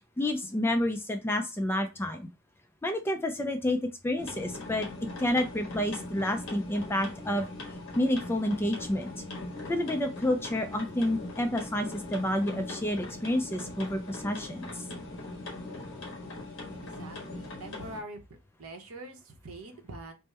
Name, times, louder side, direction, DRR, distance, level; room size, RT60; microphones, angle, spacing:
voice 1, 0.2-2.3 2.8-4.9 5.2-7.4 8.0-9.1 9.7-14.7, left 1 dB, 10° left, 5 dB, 0.4 m, -29 dB
sound 1, 4.2-18.0, left 2 dB, 55° left, 1.3 m, -41 dB
voice 2, 16.7-18.2 18.6-20.1, right 2 dB, 75° right, 5 dB, 0.8 m, -44 dB
3.5 x 2.1 x 4.2 m, 0.26 s
head